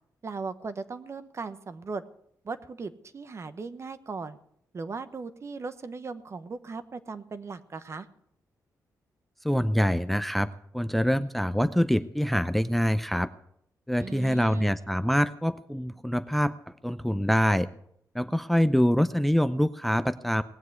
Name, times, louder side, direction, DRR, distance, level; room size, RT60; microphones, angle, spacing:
voice 1, 0.2-2.0 2.4-4.4 4.7-8.1 14.0-14.8, right 4 dB, 45° right, 12 dB, 1.0 m, -38 dB
voice 2, 9.4-13.3 13.9-17.7 18.1-20.4, equal, ahead, 13 dB, 0.5 m, -25 dB
18.5 x 7.5 x 8.1 m, 0.73 s
cardioid pair, 85°, 7 cm